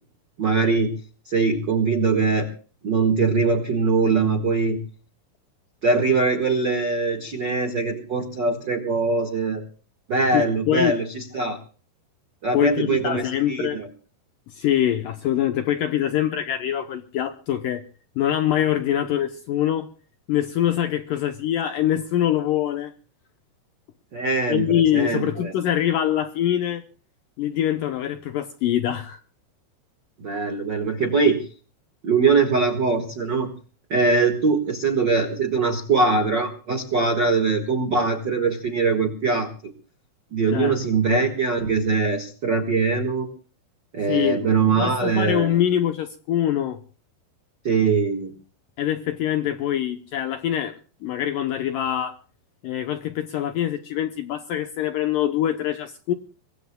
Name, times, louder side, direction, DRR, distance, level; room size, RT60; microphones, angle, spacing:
voice 1, 0.4-0.9 1.3-2.5 2.8-4.8 5.8-9.6 10.1-11.6 12.4-13.9 24.1-25.5 30.2-31.4 32.0-33.5 33.9-39.5 40.3-43.3 43.9-45.5 47.6-48.3, right 4 dB, 70° right, 1.0 m, -22 dB
voice 2, 10.3-11.0 12.5-13.8 14.5-17.9 18.2-19.9 20.3-22.9 24.5-26.8 27.4-29.2 40.5-41.0 44.1-46.8 48.8-52.2 52.6-56.1, left 11 dB, 80° left, 1.9 m, -24 dB
24.5 x 21.0 x 2.2 m
omnidirectional pair, 4.8 m